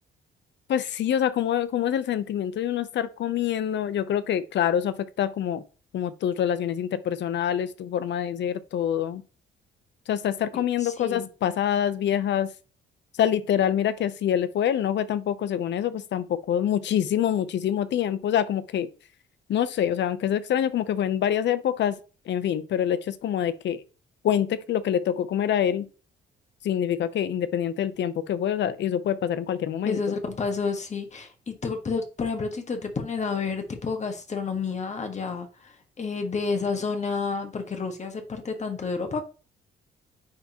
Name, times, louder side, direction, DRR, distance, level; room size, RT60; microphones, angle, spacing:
voice 1, 0.7-5.6 5.9-9.2 10.1-12.5 13.2-18.9 19.5-22.0 22.3-23.8 24.2-25.9 26.6-30.0, left 10 dB, 65° left, 0.7 m, -26 dB
voice 2, 10.8-11.3 29.8-39.2, left 4 dB, 35° left, 1.4 m, -30 dB
9.6 x 3.5 x 2.9 m
cardioid pair, 90°, 20 cm